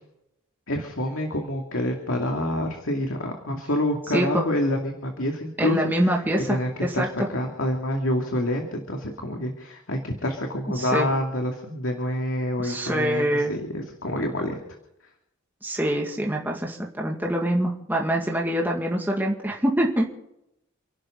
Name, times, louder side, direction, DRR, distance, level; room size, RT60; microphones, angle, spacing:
voice 1, 0.7-14.6, left 1 dB, 70° left, 2 dB, 2.5 m, -27 dB
voice 2, 4.1-4.4 5.6-7.3 10.7-11.1 12.6-13.5 15.6-20.0, equal, 10° right, -1 dB, 2.1 m, -25 dB
30.0 x 12.0 x 3.9 m, 0.82 s
head